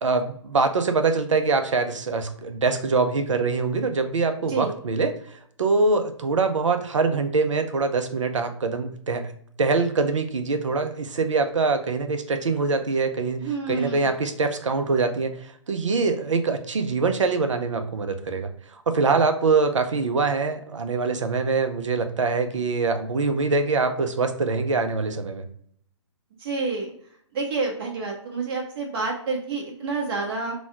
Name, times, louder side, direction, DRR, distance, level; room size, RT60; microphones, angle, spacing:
voice 1, 0.0-9.3 9.6-25.4, right 4 dB, 80° right, 8 dB, 0.7 m, -24 dB
voice 2, 13.4-14.0 26.4-26.9 27.3-30.5, right 3 dB, 50° right, -1 dB, 1.3 m, -28 dB
4.1 x 2.3 x 4.5 m, 0.64 s
figure-of-eight pair, 130°, 16 cm